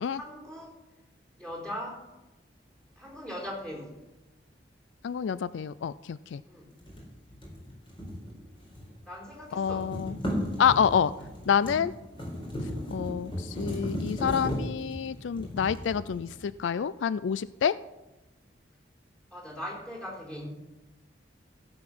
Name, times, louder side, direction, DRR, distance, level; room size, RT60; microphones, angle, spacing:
voice 1, 0.1-0.7 1.4-2.0 3.0-3.9 6.5-6.7 9.1-9.9 19.3-20.5, equal, 5° left, -3 dB, 4.0 m, -39 dB
voice 2, 5.0-6.4 9.5-10.2 10.6-11.1 11.5-11.9 12.9-17.7, left 7 dB, 80° left, 17 dB, 0.4 m, -28 dB
sound 1, 6.8-9.0 9.3-16.6, equal, 30° left, 4.2 m, -36 dB
15.5 x 7.9 x 6.1 m, 1.0 s
head